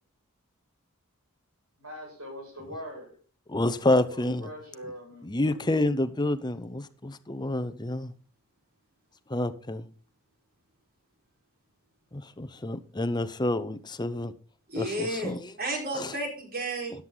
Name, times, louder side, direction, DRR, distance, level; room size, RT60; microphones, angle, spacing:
voice 1, 1.8-3.1 3.8-5.6, equal, 70° right, 6.5 m, -42 dB
voice 2, 3.5-4.5 5.2-8.1 9.3-9.9 12.1-14.3 14.8-15.4 15.9-16.1, left 1 dB, 20° left, 0.8 m, -28 dB
voice 3, 14.7-16.9, right 1 dB, 45° right, 4.6 m, -32 dB
13.5 x 9.7 x 3.9 m
head